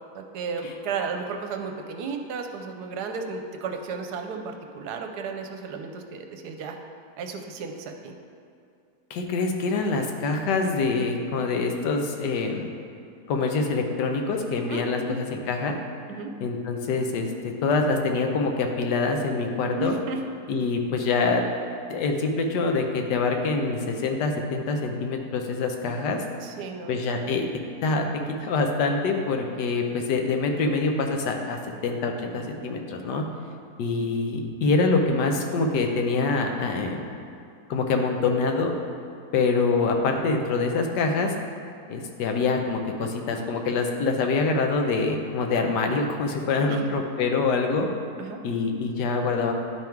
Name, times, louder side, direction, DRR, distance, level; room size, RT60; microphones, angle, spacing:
voice 1, 0.1-6.8 7.2-8.1 14.7-15.1 16.1-16.3 19.8-20.2 26.4-27.0 46.7-46.8 48.2-48.4, right 5 dB, 80° right, 4 dB, 1.1 m, -33 dB
voice 2, 9.1-12.7 13.3-15.8 16.4-17.3 17.6-19.9 20.5-21.4 21.9-26.2 26.9-27.5 27.8-28.1 28.4-33.2 33.8-37.1 37.7-38.7 39.3-41.3 41.9-47.9 48.4-49.5, left 4 dB, 80° left, 3 dB, 1.3 m, -25 dB
10.5 x 3.6 x 4.5 m, 2.5 s
omnidirectional pair, 1.8 m